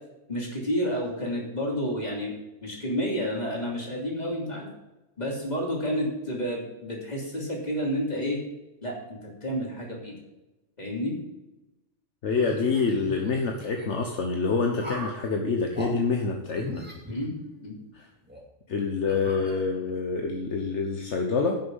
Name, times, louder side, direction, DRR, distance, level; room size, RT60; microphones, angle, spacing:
voice 1, 0.3-2.3 2.6-4.7 5.2-8.4 8.8-10.1 10.8-11.2 17.1-17.8, equal, 35° left, -2 dB, 3.1 m, -30 dB
voice 2, 12.2-16.9 17.9-18.1 18.7-21.6, left 4 dB, 70° left, 2 dB, 1.4 m, -27 dB
sound 1, 12.4-13.9 14.8-15.2 15.7-15.9 16.5-17.8 18.3-18.4 19.1-20.0, left 1 dB, 10° right, 2.4 m, -39 dB
10.5 x 6.6 x 5.6 m, 1.0 s
omnidirectional pair, 1.3 m